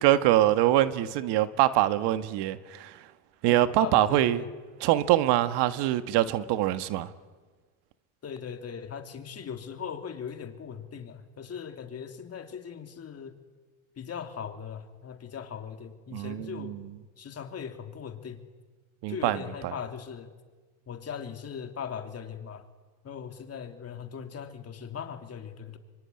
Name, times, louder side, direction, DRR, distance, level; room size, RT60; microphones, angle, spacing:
voice 1, 0.0-3.0 3.4-4.4 4.8-7.1 16.1-16.8 19.0-19.7, right 14 dB, 60° right, 1.7 m, -24 dB
voice 2, 3.4-4.5 8.2-13.4 14.0-16.8 17.2-18.4 19.1-20.3 20.9-22.7 23.0-25.8, left 7 dB, 30° left, 3.4 m, -39 dB
24.5 x 24.5 x 10.0 m
supercardioid pair, 110°, 45 cm